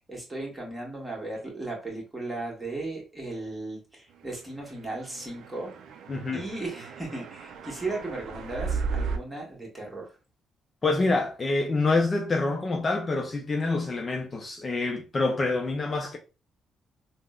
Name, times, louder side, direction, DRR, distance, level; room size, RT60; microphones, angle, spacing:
voice 1, 0.1-5.7 6.3-10.1, right 2 dB, 15° right, 1.4 m, -36 dB
sound 1, 4.7-9.2, right 5 dB, 75° right, 0.4 m, -35 dB
voice 2, 6.1-6.4 10.8-16.2, left 3 dB, 35° left, 0.5 m, -26 dB
3.5 x 2.1 x 2.3 m
cardioid pair, 90°, 0 cm